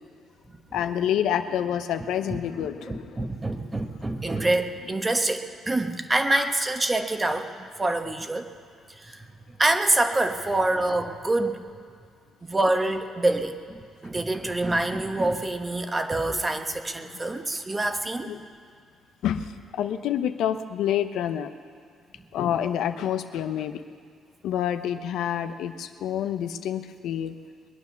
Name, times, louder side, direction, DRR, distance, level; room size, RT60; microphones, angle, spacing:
voice 1, 0.7-3.3 6.3-6.5 18.2-18.4 19.2-19.5 19.8-21.5 22.3-23.8 24.4-27.3, left 10 dB, 85° left, 8 dB, 0.8 m, -28 dB
voice 2, 2.9-8.5 9.0-9.3 9.6-11.6 12.5-13.8 14.0-18.3, right 2 dB, 20° right, 6 dB, 1.2 m, -26 dB
22.0 x 9.4 x 7.0 m, 2.2 s
cardioid pair, 90°, 0 cm